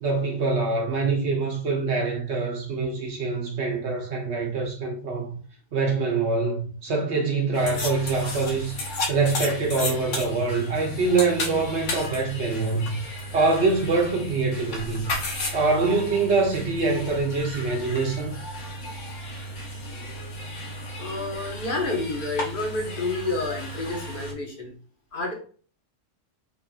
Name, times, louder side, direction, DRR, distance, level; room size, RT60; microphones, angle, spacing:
voice 1, 0.0-5.4 5.7-8.8 9.1-13.0 13.3-15.1 15.5-18.3, right 3 dB, 65° right, 1.0 m, -24 dB
sound 1, 7.5-24.3, left 1 dB, 70° left, 1.2 m, -34 dB
voice 2, 21.0-24.7 25.1-25.3, left 2 dB, 45° left, 1.1 m, -29 dB
4.3 x 3.5 x 2.3 m
omnidirectional pair, 1.3 m